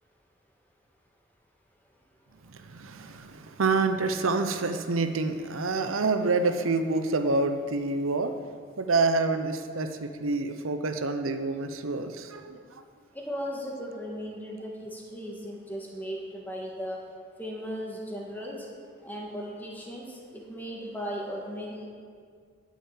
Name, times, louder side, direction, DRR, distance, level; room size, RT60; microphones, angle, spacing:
voice 1, 2.4-8.3 8.8-12.8, right 3 dB, 90° right, 8 dB, 0.7 m, -27 dB
voice 2, 13.1-17.0 17.4-18.6 19.0-20.1 20.3-21.9, equal, 10° left, -2 dB, 1.7 m, -36 dB
9.2 x 7.4 x 8.6 m, 2.1 s
head